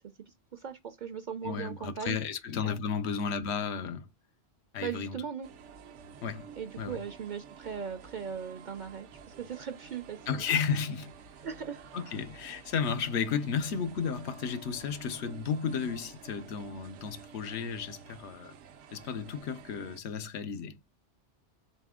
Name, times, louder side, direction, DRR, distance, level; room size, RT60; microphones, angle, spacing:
voice 1, 0.3-2.2 2.6-2.8 4.8-5.5 6.6-10.4 11.4-11.8, right 7 dB, 55° right, 0.5 m, -39 dB
voice 2, 1.4-4.1 4.7-5.2 6.2-6.5 6.8-7.0 10.3-11.1 11.9-18.5 18.9-20.8, left 6 dB, 75° left, 0.9 m, -33 dB
sound 1, 5.4-20.0, right 7 dB, 90° right, 1.0 m, -51 dB
4.0 x 2.6 x 3.5 m
omnidirectional pair, 1.2 m